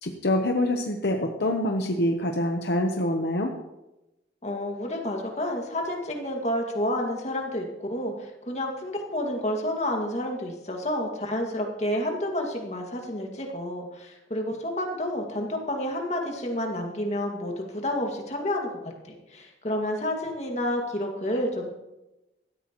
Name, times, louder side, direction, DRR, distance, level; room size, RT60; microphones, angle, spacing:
voice 1, 0.0-3.5, left 1 dB, 65° left, 3 dB, 0.9 m, -25 dB
voice 2, 4.4-21.7, left 1 dB, 40° left, 1 dB, 2.0 m, -30 dB
17.0 x 13.0 x 3.0 m, 0.98 s
head